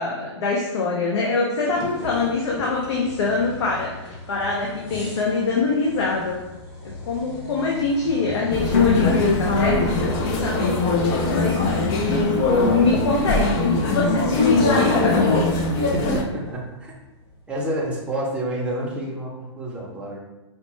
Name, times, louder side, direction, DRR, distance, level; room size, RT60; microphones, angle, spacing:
voice 1, 0.0-6.4 6.8-11.0 11.3-15.3, left 4 dB, 70° left, -2 dB, 0.7 m, -24 dB
sound 1, 1.6-18.0, left 2 dB, 50° left, 1.4 m, -40 dB
sound 2, 8.5-16.2, left 2 dB, 25° left, 0.3 m, -21 dB
voice 2, 15.9-16.9 17.5-20.2, right 1 dB, 5° right, -4 dB, 0.6 m, -29 dB
4.4 x 2.1 x 3.1 m, 1.0 s
hypercardioid pair, 140°, 15 cm